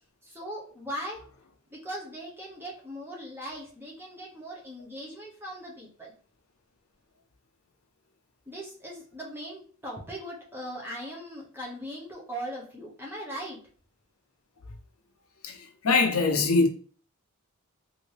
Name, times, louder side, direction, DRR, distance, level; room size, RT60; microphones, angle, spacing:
voice 1, 0.2-1.2 1.7-6.1 8.5-13.6, equal, 10° right, 0.8 m, -39 dB
voice 2, 15.4-16.7, left 3 dB, 75° left, 0.6 m, -23 dB
3.0 x 2.7 x 3.2 m
head